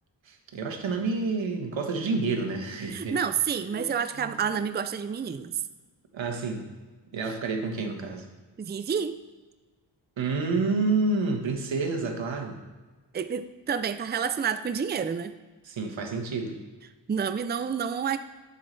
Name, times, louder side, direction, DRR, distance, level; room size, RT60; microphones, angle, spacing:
voice 1, 0.2-3.2 3.7-3.8 4.2-4.3 6.1-6.7 7.1-8.3 10.2-12.6 15.6-16.6, right 3 dB, 90° right, 4 dB, 1.4 m, -29 dB
voice 2, 2.9-5.6 8.6-9.2 13.1-15.3 17.1-18.2, right 7 dB, 25° right, 11 dB, 0.4 m, -29 dB
11.5 x 8.2 x 3.3 m, 1.3 s
wide cardioid pair, 90°, 45 cm